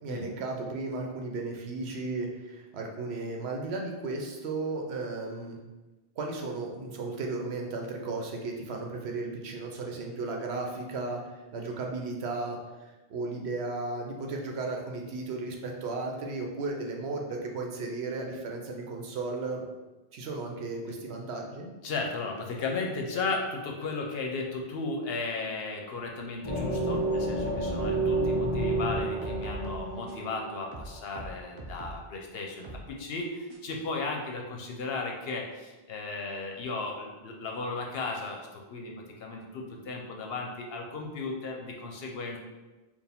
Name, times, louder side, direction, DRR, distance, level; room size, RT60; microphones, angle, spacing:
voice 1, 0.0-5.6 6.2-11.2 11.5-12.6 13.1-19.6 20.1-21.7, right 3 dB, 85° right, 1 dB, 1.0 m, -35 dB
voice 2, 21.8-42.4, left 3 dB, 75° left, 0 dB, 0.8 m, -35 dB
sound 1, 26.4-31.0, right 2 dB, 30° left, 0.7 m, -30 dB
sound 2, 29.0-30.3 30.7-32.1 32.6-32.9 33.5-33.6, right 2 dB, 35° right, 0.5 m, -42 dB
4.5 x 2.4 x 3.5 m, 1.2 s
omnidirectional pair, 1.1 m